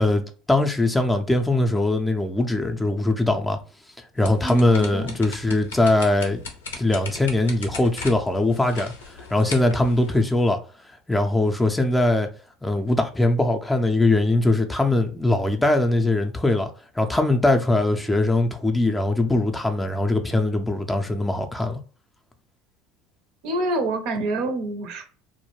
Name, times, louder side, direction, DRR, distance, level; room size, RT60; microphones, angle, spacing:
voice 1, 0.0-3.6 4.2-6.4 6.8-10.6 11.1-12.3 12.6-16.7 17.0-21.8, left 2 dB, 10° left, 0.4 m, -21 dB
sound 1, 4.2-10.3, left 4 dB, 90° left, 0.6 m, -38 dB
voice 2, 4.4-5.1 23.4-25.0, right 2 dB, 65° right, 0.6 m, -27 dB
2.3 x 2.1 x 3.0 m
hypercardioid pair, 75°, 0 cm